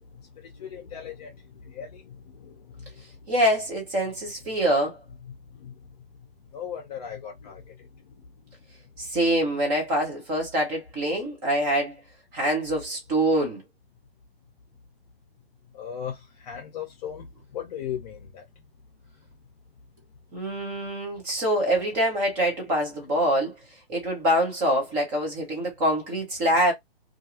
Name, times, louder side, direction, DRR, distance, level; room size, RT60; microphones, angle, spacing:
voice 1, 0.6-1.3 1.8-1.9 6.5-7.6 15.8-16.1 16.5-17.2 17.5-18.2, left 8 dB, 40° left, 0.6 m, -35 dB
voice 2, 3.3-5.0 9.0-12.0 12.3-13.6 20.3-23.5 23.9-26.7, right 1 dB, 5° right, 0.3 m, -25 dB
2.4 x 2.3 x 2.8 m
hypercardioid pair, 145°, 30 cm